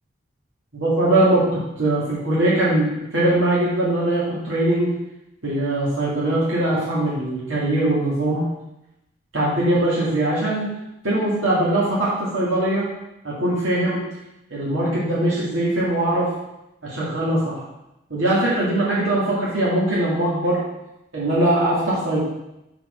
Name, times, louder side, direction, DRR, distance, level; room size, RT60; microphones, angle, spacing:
voice 1, 0.7-4.9 5.4-8.5 9.3-10.7 11.0-12.8 13.2-14.0 14.5-16.3 16.8-17.6 18.1-20.6 21.1-22.2, right 1 dB, 85° right, -7 dB, 2.0 m, -21 dB
5.9 x 4.5 x 6.1 m, 0.89 s
head